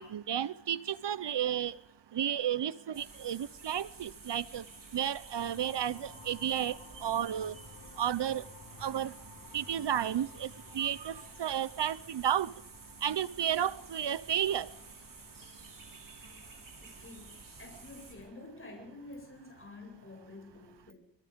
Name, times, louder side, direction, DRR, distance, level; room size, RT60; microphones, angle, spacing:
voice 1, 0.0-1.7 2.1-4.6 4.9-6.8 7.0-7.5 8.0-8.4 8.8-9.1 9.5-10.5 10.7-11.1 11.4-12.5 13.0-14.7, right 9 dB, 75° right, 0.8 m, -32 dB
sound 1, 2.9-18.1, right 3 dB, 50° right, 6.3 m, -52 dB
sound 2, 5.4-15.9, left 3 dB, 65° left, 4.1 m, -55 dB
voice 2, 16.1-20.9, left 2 dB, 30° left, 7.9 m, -50 dB
27.0 x 21.5 x 5.2 m
wide cardioid pair, 145°, 42 cm